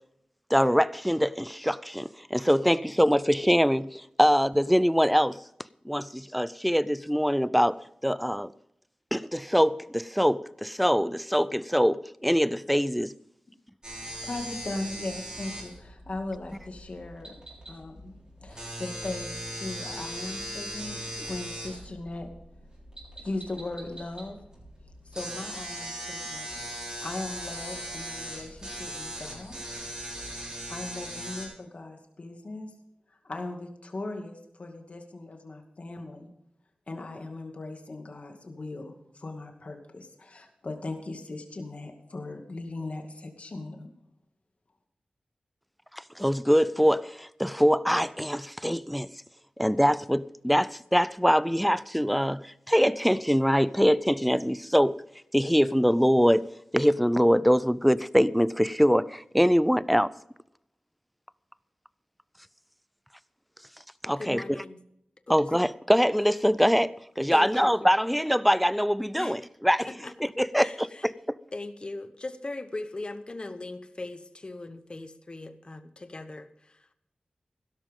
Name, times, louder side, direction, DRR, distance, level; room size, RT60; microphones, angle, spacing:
voice 1, 0.5-5.4 5.9-8.5 9.1-13.1 45.9-49.1 49.6-55.0 55.3-56.5 56.7-60.1 64.0-64.6 65.3-69.9 70.2-71.4, equal, ahead, 0.5 m, -23 dB
sound 1, 13.8-31.5, equal, 30° right, 6.8 m, -39 dB
voice 2, 14.0-17.3 17.7-18.1 18.4-22.3 23.2-24.4 25.1-29.6 30.7-32.7 33.1-36.3 36.9-43.9, left 2 dB, 55° left, 2.3 m, -38 dB
voice 3, 64.2-64.8 65.3-65.4 67.3-67.7 69.2-69.4 69.9-70.1 70.6-71.1 71.5-77.0, left 2 dB, 35° left, 1.0 m, -39 dB
16.0 x 12.5 x 3.7 m
wide cardioid pair, 70°, 3 cm